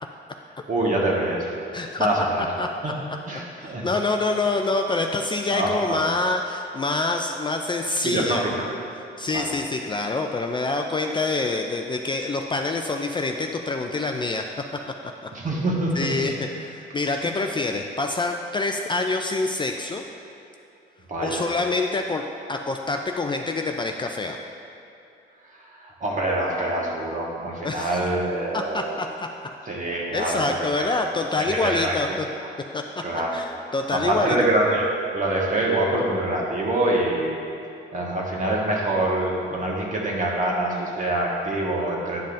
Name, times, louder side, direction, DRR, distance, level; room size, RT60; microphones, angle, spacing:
voice 1, 0.7-1.5 2.0-2.5 2.8-2.9 3.3-3.8 5.5-6.0 8.0-8.7 9.3-9.5 15.3-16.3 21.1-21.4 25.8-29.0 29.7-30.9 31.4-31.9 32.4-32.5 33.0-33.4 33.9-34.9 35.1-37.4 37.9-42.2, right 1 dB, 40° right, -3 dB, 1.4 m, -25 dB
voice 2, 1.7-2.9 3.8-8.5 9.0-14.5 15.2-15.3 15.9-20.0 21.2-22.2 22.5-24.4 27.6-28.0 28.5-29.3 30.1-32.3 32.7-32.8 33.3-34.4, left 3 dB, 25° left, 3 dB, 0.4 m, -26 dB
10.0 x 5.3 x 2.6 m, 2.8 s
cardioid pair, 90°, 20 cm